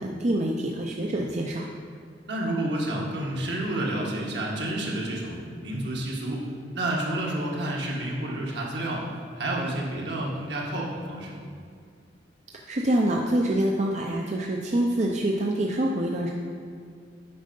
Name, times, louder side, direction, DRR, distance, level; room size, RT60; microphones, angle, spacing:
voice 1, 0.0-1.7 12.7-16.3, right 1 dB, 40° right, -1 dB, 0.6 m, -26 dB
voice 2, 2.3-6.4 6.7-9.0 9.4-11.5, right 1 dB, 65° right, -2 dB, 1.6 m, -30 dB
8.7 x 5.4 x 5.3 m, 2.1 s
head